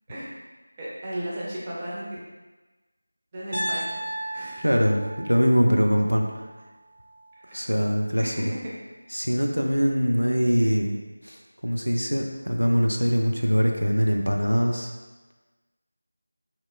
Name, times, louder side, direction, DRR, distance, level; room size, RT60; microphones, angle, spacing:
voice 1, 0.8-2.2 3.3-4.0 4.3-4.7 7.4-7.6 8.2-8.6 10.6-10.7, equal, 15° right, -8 dB, 0.4 m, -35 dB
Piano, 3.5-7.6, right 1 dB, 65° right, 0.8 m, -36 dB
voice 2, 4.6-6.3 7.5-8.5 9.1-14.9, equal, 85° right, 2 dB, 0.3 m, -23 dB
2.8 x 2.3 x 2.3 m, 1.2 s
figure-of-eight pair, 170°, 0 cm